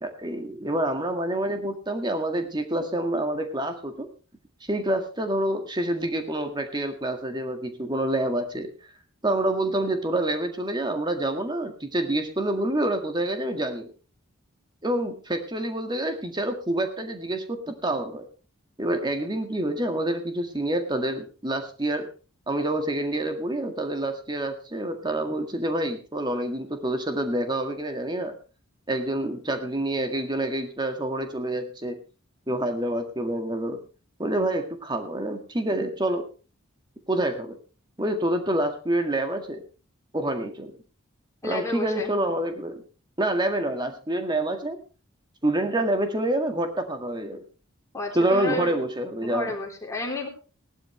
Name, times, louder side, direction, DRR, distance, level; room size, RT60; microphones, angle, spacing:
voice 1, 0.0-4.1 4.6-8.7 9.2-13.9 14.8-18.2 18.8-22.1 22.5-28.4 28.9-32.0 32.5-33.8 34.2-36.3 37.1-37.6 38.0-39.6 40.1-40.7 41.4-42.8 43.2-44.8 45.4-47.4 48.1-49.6, right 1 dB, 20° right, 6 dB, 1.9 m, -27 dB
voice 2, 41.4-42.1 47.9-48.7 49.2-50.3, left 2 dB, 15° left, -1 dB, 3.6 m, -31 dB
18.0 x 11.5 x 3.3 m, 0.34 s
head